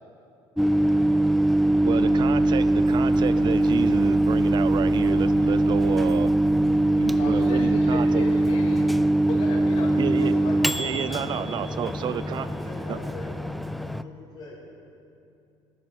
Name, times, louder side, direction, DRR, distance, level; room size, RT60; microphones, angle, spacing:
Microwave oven, 0.6-14.0, right 1 dB, ahead, 0.4 m, -22 dB
voice 1, 1.8-6.3 7.0-8.3 10.0-10.3 10.8-12.5 12.9-13.0, right 9 dB, 45° right, 14 dB, 0.7 m, -30 dB
voice 2, 7.1-8.9 9.2-10.6 11.1-11.3, left 3 dB, 65° left, 1 dB, 2.8 m, -36 dB
voice 3, 11.1-11.5 11.8-13.4 14.0-14.7, left 2 dB, 30° left, -11 dB, 4.0 m, -44 dB
19.0 x 12.0 x 6.0 m, 2.7 s
cardioid pair, 130°, 11 cm